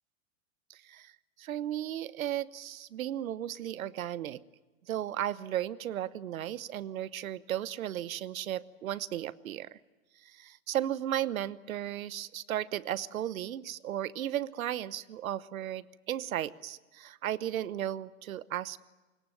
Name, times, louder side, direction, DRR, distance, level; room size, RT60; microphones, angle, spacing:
voice 1, 0.7-1.1 1.4-4.4 4.9-9.8 10.2-18.8, right 11 dB, 75° right, 17 dB, 1.1 m, -35 dB
25.0 x 22.0 x 9.2 m, 1.2 s
hypercardioid pair, 125°, 42 cm